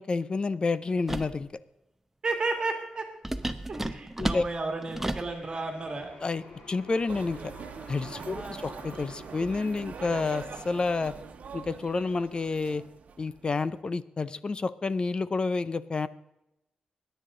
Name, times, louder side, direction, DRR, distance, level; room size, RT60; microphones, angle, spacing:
voice 1, 0.0-1.5 4.2-4.4 6.2-7.5 7.9-11.1 11.5-12.8 13.2-16.1, left 3 dB, 35° left, 16 dB, 0.6 m, -29 dB
sound 1, 1.1-1.4 3.2-5.3, right 1 dB, 10° right, 0.8 m, -32 dB
voice 2, 2.2-3.1 3.7-6.1 8.3-8.6, right 3 dB, 35° right, 4 dB, 2.1 m, -33 dB
sound 2, 5.3-11.2, left 1 dB, 90° left, 4.8 m, -50 dB
sound 3, 7.1-13.8, right 5 dB, 65° right, 1.2 m, -43 dB
20.5 x 10.0 x 3.8 m, 0.88 s
wide cardioid pair, 110°, 3 cm